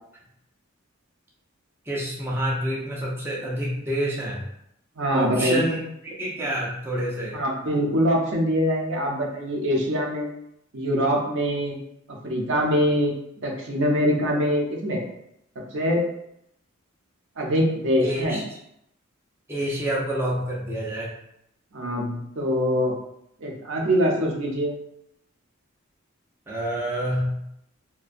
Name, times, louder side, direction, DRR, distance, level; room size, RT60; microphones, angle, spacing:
voice 1, 1.9-4.4 5.1-7.4 18.0-18.4 19.5-21.1 26.5-27.4, right 1 dB, 10° right, -5 dB, 0.4 m, -28 dB
voice 2, 5.0-5.6 7.3-10.3 10.7-11.8 12.1-13.1 13.4-15.0 15.7-16.0 17.4-18.4 21.7-22.9 23.4-24.7, equal, 65° right, 0 dB, 0.5 m, -23 dB
2.4 x 2.1 x 2.5 m, 0.77 s
head